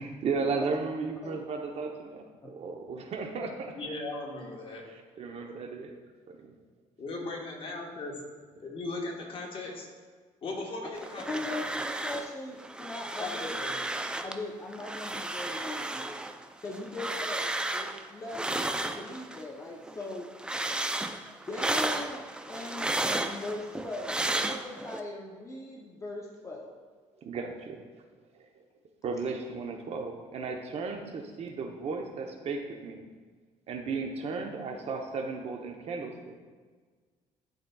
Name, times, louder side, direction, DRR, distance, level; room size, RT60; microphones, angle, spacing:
voice 1, 0.0-3.7 4.9-5.9 6.3-6.5 27.2-27.8 28.3-28.5 29.0-33.1 33.7-36.3, right 4 dB, 55° right, 3 dB, 0.8 m, -35 dB
voice 2, 3.7-4.9 7.0-8.2 8.6-9.9 10.4-11.6 13.2-13.8, left 2 dB, 45° left, -1 dB, 1.3 m, -38 dB
sound 1, 11.0-12.3 12.6-14.4 14.7-19.5 19.8-25.0, right 2 dB, 5° right, 0.3 m, -33 dB
voice 3, 11.3-13.6 14.2-16.2 16.6-20.3 21.5-26.8, left 2 dB, 25° left, -1 dB, 0.7 m, -39 dB
11.5 x 4.0 x 2.3 m, 1.5 s
cardioid pair, 115°, 13 cm